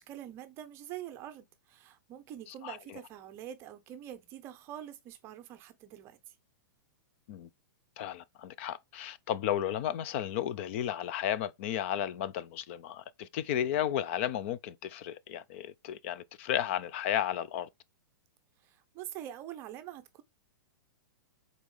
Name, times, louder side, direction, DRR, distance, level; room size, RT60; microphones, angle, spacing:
voice 1, 0.0-6.3 18.6-20.2, right 11 dB, 20° right, 0.7 m, -45 dB
voice 2, 8.0-17.7, left 10 dB, 35° left, 0.5 m, -33 dB
4.7 x 4.1 x 5.4 m
hypercardioid pair, 165°, 11 cm